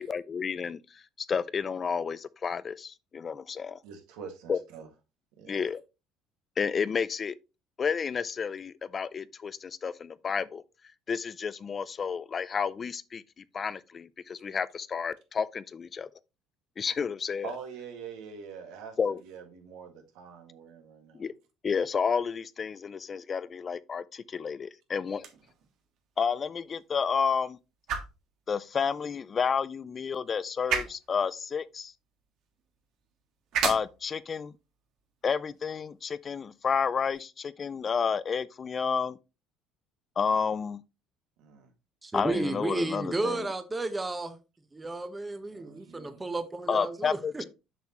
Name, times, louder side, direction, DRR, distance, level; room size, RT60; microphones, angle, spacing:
voice 1, 0.0-3.8 4.5-4.6 5.5-5.8 6.6-7.4 7.8-10.6 11.1-13.2 13.5-16.1 16.8-17.5 19.0-19.2 21.1-21.3 21.6-25.3 26.2-27.6 28.5-31.9 33.6-34.5 35.2-39.2 40.2-40.8 42.1-43.5 46.7-47.4, left 6 dB, 30° left, 0.3 m, -31 dB
voice 2, 3.8-4.9 5.4-5.7 17.4-19.0 19.2-21.3 41.4-41.7 45.5-46.3, right 6 dB, 85° right, 1.9 m, -44 dB
sound 1, 25.1-37.1, right 7 dB, 60° right, 1.6 m, -39 dB
voice 3, 42.0-44.4 44.7-47.4, right 2 dB, 15° right, 0.8 m, -32 dB
6.9 x 6.2 x 3.0 m
cardioid pair, 140°, 0 cm